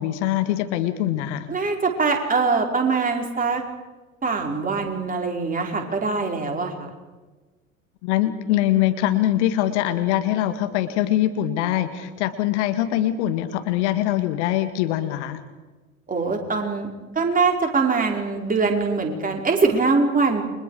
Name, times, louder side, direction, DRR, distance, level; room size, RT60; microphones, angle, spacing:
voice 1, 0.0-1.5 8.0-15.4, left 13 dB, 55° left, 9 dB, 2.0 m, -23 dB
voice 2, 1.5-3.6 4.2-6.9 16.1-20.4, right 4 dB, 20° right, 2 dB, 5.1 m, -23 dB
30.0 x 24.5 x 5.0 m, 1.3 s
figure-of-eight pair, 75°, 40 cm